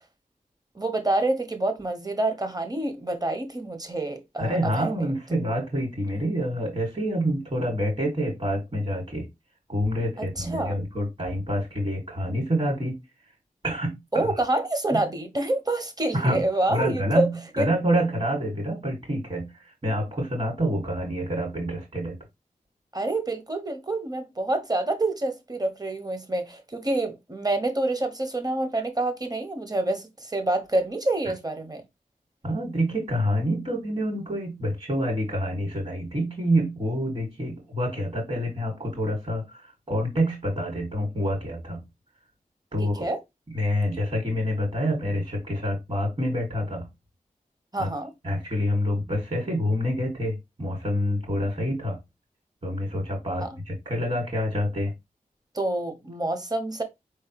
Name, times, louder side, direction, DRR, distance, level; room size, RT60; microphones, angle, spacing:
voice 1, 0.7-5.1 10.4-10.8 14.1-17.3 17.6-17.7 22.9-31.8 42.8-43.2 47.7-48.1 53.4-53.5 55.5-56.8, right 2 dB, 25° right, 1.2 m, -27 dB
voice 2, 4.4-9.3 9.7-13.0 13.6-14.3 14.9-15.0 16.1-22.2 32.4-41.8 42.7-43.1 43.5-46.9 47.8-47.9 48.2-52.0 52.6-54.9, equal, 45° right, 2.2 m, -27 dB
4.4 x 3.2 x 3.0 m
cardioid pair, 40°, 15 cm